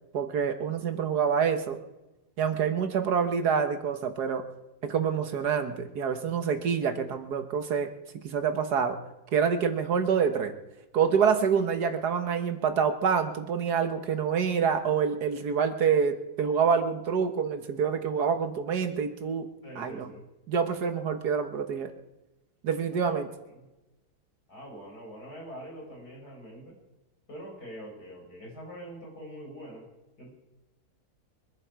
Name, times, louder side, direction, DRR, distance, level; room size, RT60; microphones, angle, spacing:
voice 1, 0.1-1.8 2.4-4.4 4.8-7.9 8.1-9.0 9.3-10.5 10.9-19.5 19.8-20.1 20.5-21.9 22.6-23.3, right 6 dB, 75° right, 7 dB, 1.8 m, -27 dB
voice 2, 19.6-20.2 22.9-23.2 23.5-23.6 24.5-26.7 27.3-29.8 30.2-30.3, equal, 75° left, -1 dB, 6.4 m, -44 dB
24.0 x 11.5 x 4.7 m, 1.0 s
omnidirectional pair, 1.7 m